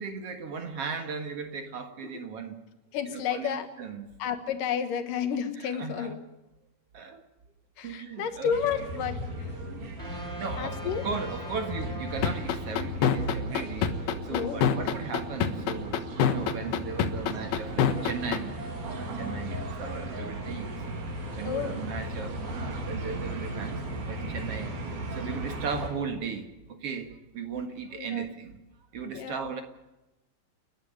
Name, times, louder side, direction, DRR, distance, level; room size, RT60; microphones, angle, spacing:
voice 1, 0.0-2.6 3.1-4.1 5.8-6.1 6.9-7.2 7.8-8.5 10.4-13.9 14.2-18.6 19.0-21.0 21.4-24.7 25.1-28.6 28.9-29.6, right 5 dB, 50° right, 6 dB, 2.2 m, -37 dB
voice 2, 2.9-3.7 4.2-6.2 7.8-9.5 10.6-11.0 14.3-14.7 21.4-21.8 27.9-28.3 29.1-29.4, left 7 dB, 65° left, 9 dB, 2.9 m, -31 dB
sound 1, 8.5-25.9, right 1 dB, 80° right, 5.3 m, -36 dB
sound 2, 10.0-13.2, equal, 10° left, 4.7 m, -43 dB
sound 3, 12.2-18.4, left 9 dB, 85° left, 3.3 m, -24 dB
29.5 x 11.0 x 9.6 m, 1.0 s
omnidirectional pair, 4.3 m